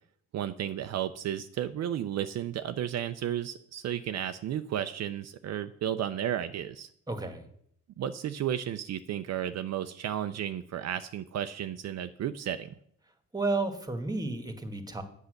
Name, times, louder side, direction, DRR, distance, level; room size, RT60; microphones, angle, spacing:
voice 1, 0.3-6.9 8.0-12.7, right 10 dB, 60° right, 9 dB, 0.5 m, -33 dB
voice 2, 7.1-7.4 13.3-15.0, right 3 dB, 10° right, 7 dB, 1.5 m, -32 dB
8.2 x 7.2 x 6.5 m, 0.69 s
cardioid pair, 90°, 30 cm